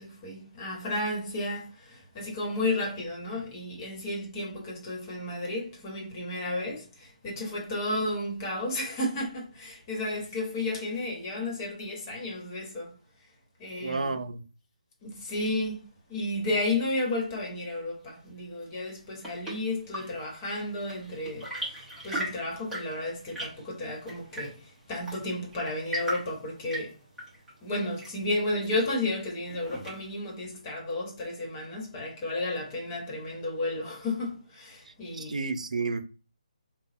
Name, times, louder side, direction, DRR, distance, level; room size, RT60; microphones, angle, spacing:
voice 1, 0.0-13.0 13.6-14.2 15.0-26.9 27.6-35.3, left 2 dB, 25° left, 1.4 m, -33 dB
voice 2, 13.8-14.4 35.1-36.0, right 4 dB, 70° right, 0.6 m, -31 dB
Chirp tweet / Engine / Tap, 18.8-30.3, equal, 5° right, 1.4 m, -40 dB
3.9 x 2.4 x 3.9 m
figure-of-eight pair, 150°, 4 cm